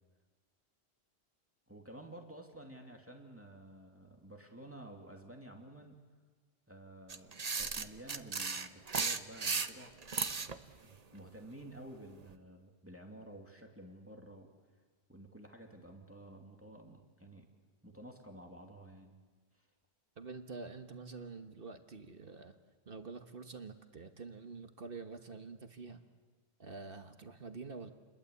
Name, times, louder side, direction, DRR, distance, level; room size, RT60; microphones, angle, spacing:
voice 1, 1.7-6.0 6.7-10.5 10.8-14.5 15.1-17.5 17.8-19.2 19.5-19.7, right 1 dB, 10° right, 2 dB, 2.7 m, -52 dB
sound 1, 7.1-10.6, right 5 dB, 40° right, 1.0 m, -35 dB
voice 2, 20.2-22.5 22.9-26.0 26.6-27.9, right 4 dB, 55° right, 7 dB, 1.5 m, -47 dB
29.5 x 21.5 x 8.3 m, 1.4 s
omnidirectional pair, 1.1 m